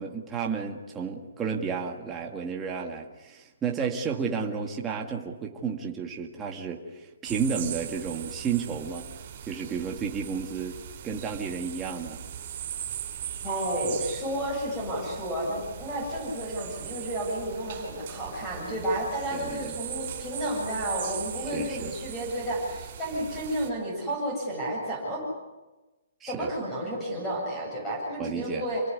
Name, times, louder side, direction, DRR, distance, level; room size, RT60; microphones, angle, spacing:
voice 1, 0.0-9.1 9.4-10.8 11.0-12.2 19.3-19.8 21.5-21.9 26.2-26.5 28.2-28.6, right 6 dB, 10° right, 0 dB, 1.9 m, -32 dB
sound 1, 7.2-23.7, right 9 dB, 30° right, 5.1 m, -39 dB
voice 2, 13.4-25.2 26.3-28.8, right 1 dB, 10° left, -3 dB, 7.8 m, -31 dB
28.5 x 18.5 x 9.7 m, 1.1 s
hypercardioid pair, 175°, 0 cm